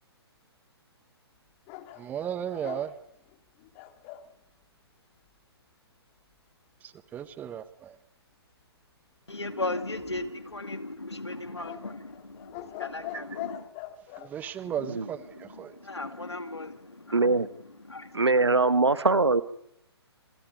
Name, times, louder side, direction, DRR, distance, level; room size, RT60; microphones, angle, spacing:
sound 1, 1.7-4.3 9.7-10.5 11.6-14.3, left 13 dB, 25° left, 1.7 m, -42 dB
voice 1, 2.0-2.9 7.1-7.9 14.2-15.2 15.6-15.7, right 9 dB, 10° right, 0.8 m, -34 dB
voice 2, 9.3-13.7 14.6-18.7, left 2 dB, 80° left, 2.2 m, -38 dB
voice 3, 17.1-17.5 18.1-19.4, right 3 dB, 80° right, 1.3 m, -22 dB
27.0 x 25.0 x 5.3 m
figure-of-eight pair, 130°, 14 cm